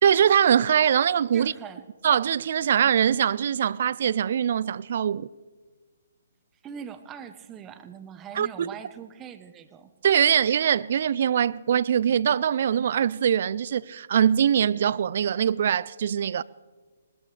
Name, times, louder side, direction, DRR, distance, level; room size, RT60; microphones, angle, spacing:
voice 1, 0.0-1.5 2.0-5.3 8.4-8.7 10.0-16.4, right 8 dB, 55° right, 0.4 m, -22 dB
voice 2, 1.3-1.8 6.6-9.9, right 8 dB, 20° right, 1.0 m, -41 dB
20.5 x 20.0 x 3.4 m
hypercardioid pair, 140°, 0 cm